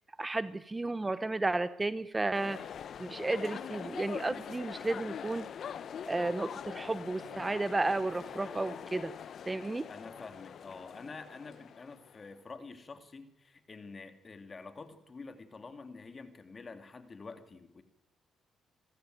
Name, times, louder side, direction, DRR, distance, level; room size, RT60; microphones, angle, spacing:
voice 1, 0.2-2.6 3.0-5.5 6.1-9.1 9.5-9.9, right 2 dB, 20° right, 14 dB, 0.8 m, -33 dB
sound 1, 2.3-12.2, left 8 dB, 60° left, 0.8 m, -43 dB
voice 2, 9.9-17.8, left 4 dB, 35° left, 8 dB, 2.6 m, -48 dB
27.5 x 14.5 x 9.3 m, 0.89 s
cardioid pair, 90°, 0 cm